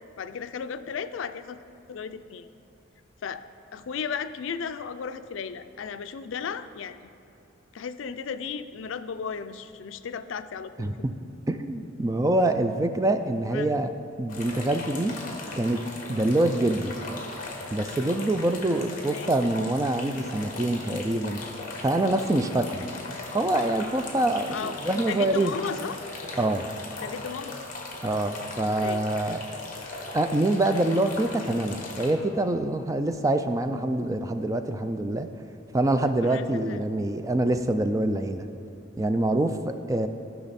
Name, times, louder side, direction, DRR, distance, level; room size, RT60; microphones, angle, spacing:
voice 1, 0.2-1.6 1.9-2.5 3.2-3.4 3.7-7.0 7.7-11.1 13.5-13.7 19.1-19.3 24.5-24.7 25.1-26.0 27.0-27.6 28.6-29.1 36.1-36.8, left 6 dB, 80° left, 12 dB, 0.4 m, -35 dB
voice 2, 10.8-11.1 11.5-13.9 14.2-15.1 15.5-15.8 16.1-16.9 17.7-21.4 21.8-22.8 23.3-25.5 26.4-26.6 28.0-29.4 30.1-35.3 35.7-38.5 39.0-40.1, right 1 dB, 15° right, 8 dB, 0.3 m, -25 dB
sound 1, 14.3-32.1, left 2 dB, 40° left, 1.2 m, -38 dB
13.5 x 5.9 x 4.2 m, 2.8 s
head